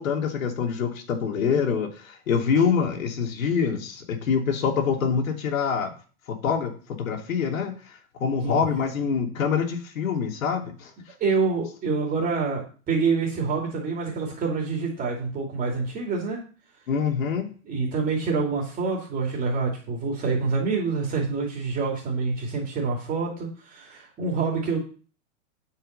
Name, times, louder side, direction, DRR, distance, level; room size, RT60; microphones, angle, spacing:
voice 1, 0.0-5.9 6.3-6.7 7.0-7.7 8.2-10.9 16.9-17.5, left 6 dB, 75° left, 4 dB, 2.9 m, -25 dB
voice 2, 11.2-16.4 17.6-24.8, right 4 dB, 20° right, -1 dB, 2.7 m, -26 dB
9.2 x 5.6 x 6.6 m, 0.39 s
hypercardioid pair, 150°, 40 cm